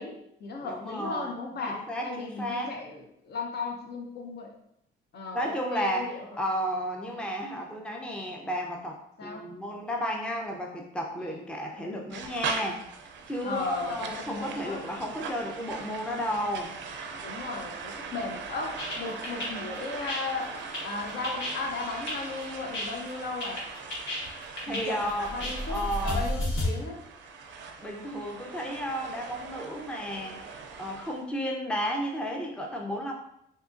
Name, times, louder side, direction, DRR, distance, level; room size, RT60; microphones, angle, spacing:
voice 1, 0.0-4.5 5.1-6.1 9.2-9.4 13.4-14.8 17.2-20.5 20.8-23.6 24.7-27.0, left 3 dB, 55° left, 1 dB, 0.7 m, -36 dB
voice 2, 0.6-1.4 1.7-2.8 5.3-12.8 13.3-16.7 24.6-25.3 25.7-26.3 27.8-33.1, equal, 5° left, 0 dB, 0.5 m, -33 dB
sound 1, 12.1-31.2, right 5 dB, 65° right, 0.4 m, -40 dB
sound 2, 18.8-26.7, left 1 dB, 70° left, 1.2 m, -34 dB
3.7 x 2.8 x 2.5 m, 0.76 s
cardioid pair, 90°, 20 cm